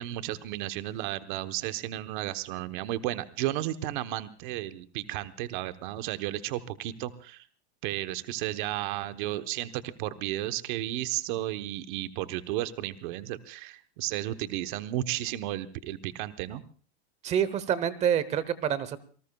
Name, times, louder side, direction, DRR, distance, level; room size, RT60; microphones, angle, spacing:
voice 1, 0.0-7.4 7.8-16.6, right 14 dB, 50° right, 11 dB, 1.1 m, -33 dB
voice 2, 17.2-19.0, right 9 dB, 20° right, 17 dB, 0.9 m, -27 dB
27.5 x 19.0 x 2.3 m, 0.41 s
supercardioid pair, 165°, 32 cm